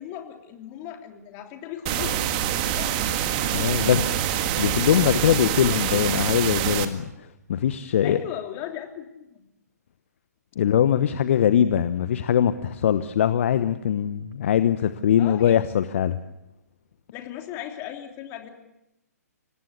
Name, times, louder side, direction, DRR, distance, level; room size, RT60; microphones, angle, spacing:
voice 1, 0.0-2.2 2.7-3.0 5.7-6.0 8.0-9.4 15.2-15.6 17.1-18.5, left 11 dB, 25° left, 4 dB, 3.2 m, -37 dB
sound 1, 1.9-6.9, right 10 dB, 30° right, 1.8 m, -25 dB
voice 2, 3.5-4.2 4.6-8.2 10.6-16.2, left 9 dB, 45° left, 12 dB, 1.0 m, -22 dB
25.5 x 19.0 x 8.3 m, 0.90 s
figure-of-eight pair, 130°, 9 cm